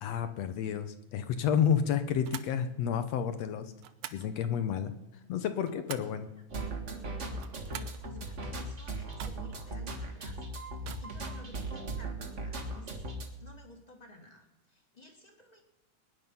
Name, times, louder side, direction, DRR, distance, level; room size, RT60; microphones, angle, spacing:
voice 1, 0.0-3.7 4.1-4.9 5.3-6.3, left 8 dB, 75° left, 10 dB, 1.6 m, -30 dB
sound 1, 2.2-2.6 3.8-4.3 5.4-6.2 7.3-8.0 9.1-9.6 10.7-11.4, right 11 dB, 70° right, 1.9 m, -46 dB
sound 2, 6.5-13.3, right 2 dB, 40° right, 1.0 m, -38 dB
voice 2, 7.2-10.4 10.7-15.6, left 3 dB, 15° left, 2 dB, 1.5 m, -54 dB
21.0 x 10.5 x 5.5 m, 0.97 s
omnidirectional pair, 3.8 m